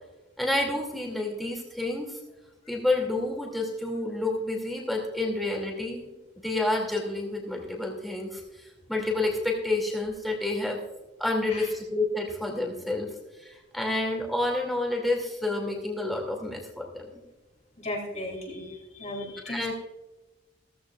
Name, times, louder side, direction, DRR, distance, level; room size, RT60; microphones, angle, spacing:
voice 1, 0.4-2.2 2.7-6.1 6.4-10.8 11.2-17.1 19.4-19.7, left 2 dB, ahead, -1 dB, 2.5 m, -29 dB
voice 2, 17.8-19.7, left 1 dB, 35° left, 1 dB, 2.6 m, -36 dB
16.5 x 14.5 x 2.4 m, 1.1 s
head